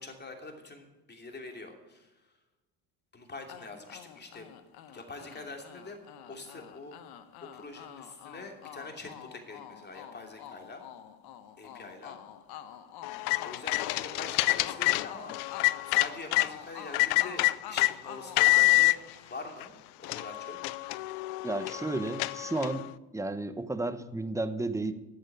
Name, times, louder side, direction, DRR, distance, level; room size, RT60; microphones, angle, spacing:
voice 1, 0.0-2.3 3.1-4.5 4.9-6.0 6.3-7.0 7.4-10.8 11.6-12.2 13.4-15.3 15.8-19.0 19.3-19.7 20.0-20.6, left 3 dB, 25° left, 3 dB, 2.9 m, -44 dB
sound 1, 3.5-19.7, left 10 dB, 60° left, 1.2 m, -47 dB
sound 2, 13.0-16.5 16.9-17.9 18.4-18.9 19.6-19.7 20.0-22.9, left 22 dB, 80° left, 0.6 m, -27 dB
voice 2, 21.4-22.9 23.1-24.9, right 2 dB, 5° right, 12 dB, 0.9 m, -32 dB
11.0 x 7.8 x 9.2 m, 1.1 s
supercardioid pair, 80°, 42 cm